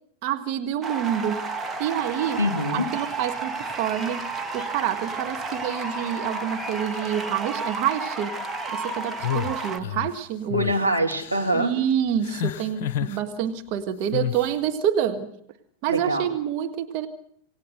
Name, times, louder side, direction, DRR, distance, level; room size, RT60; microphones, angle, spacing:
voice 1, 0.2-1.5 1.8-2.4 2.7-4.3 4.5-8.3 8.7-10.7 11.5-15.3 15.8-17.1, right 9 dB, 45° right, 7 dB, 1.5 m, -27 dB
sound 1, 0.8-9.8, right 3 dB, 15° right, 1.7 m, -32 dB
voice 2, 2.4-2.9 10.5-11.7 15.9-16.3, equal, 90° right, 1 dB, 2.2 m, -24 dB
sound 2, 9.2-10.1 10.5-10.7 11.1-11.6 12.2-13.2 14.1-14.5, left 11 dB, 50° left, 0.8 m, -29 dB
27.0 x 18.5 x 6.6 m, 0.66 s
figure-of-eight pair, 90°, 0 cm